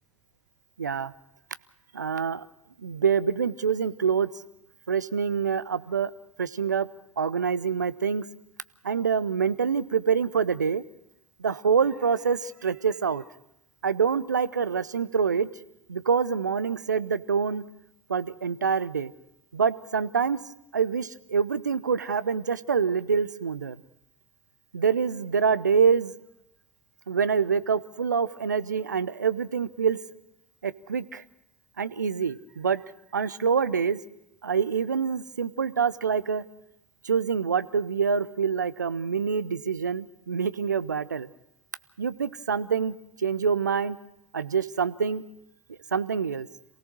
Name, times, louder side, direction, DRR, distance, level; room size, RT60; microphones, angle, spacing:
voice 1, 0.8-1.1 1.9-2.5 2.8-4.3 4.9-6.1 6.4-6.9 7.2-8.3 8.8-10.8 11.4-13.2 13.8-15.5 15.9-17.6 18.1-19.1 19.5-20.4 20.7-23.8 24.7-26.2 27.1-30.0 30.6-31.2 31.8-32.8 33.1-34.0 34.4-36.4 37.0-41.3 42.0-44.0 44.3-45.2 45.9-46.5, right 6 dB, 80° right, 16 dB, 0.7 m, -26 dB
27.5 x 17.0 x 6.2 m, 0.83 s
figure-of-eight pair, 70°, 10 cm